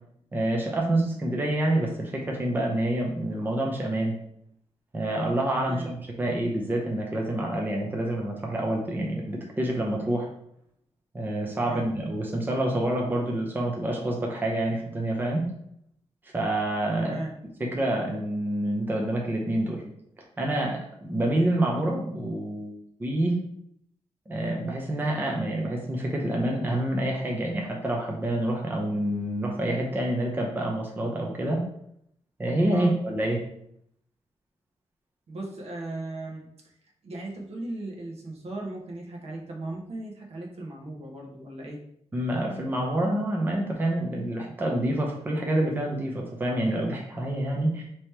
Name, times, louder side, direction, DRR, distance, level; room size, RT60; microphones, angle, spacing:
voice 1, 0.3-4.1 4.9-10.3 11.1-15.4 16.3-17.2 17.6-19.8 20.4-22.7 23.0-23.4 24.3-31.6 32.4-33.4 42.1-47.8, right 1 dB, 15° right, -1 dB, 0.6 m, -27 dB
voice 2, 17.0-17.3 32.7-33.0 35.3-41.8, right 2 dB, 65° right, 0 dB, 0.9 m, -37 dB
3.4 x 3.0 x 4.3 m, 0.70 s
wide cardioid pair, 170°, 11 cm